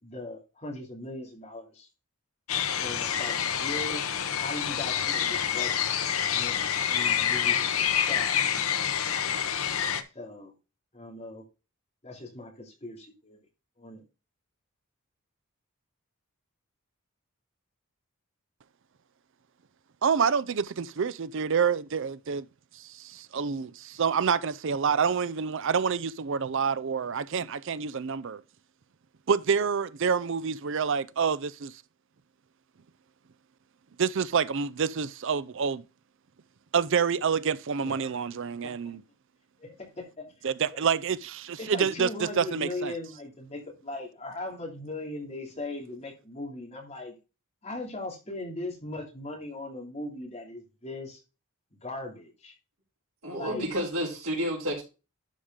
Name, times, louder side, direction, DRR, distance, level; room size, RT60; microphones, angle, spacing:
voice 1, 0.0-1.9 2.8-4.0 4.3-5.9 6.3-6.6 6.9-7.7 8.1-8.6 10.1-10.5 10.9-11.4 12.0-13.4 13.8-14.0 37.8-38.3 38.6-38.7 39.6-40.3 40.7-40.8 41.6-47.1 47.6-51.2 51.8-52.5 53.3-53.6, left 2 dB, 30° left, 2.8 m, -39 dB
sound 1, 2.5-10.0, left 8 dB, 85° left, 0.9 m, -27 dB
voice 2, 20.0-22.4 22.8-28.4 29.3-31.7 34.0-35.8 36.7-39.0 40.4-42.9, right 6 dB, 60° right, 0.5 m, -27 dB
voice 3, 53.2-54.8, equal, 90° right, 3.9 m, -30 dB
11.5 x 5.1 x 3.7 m
head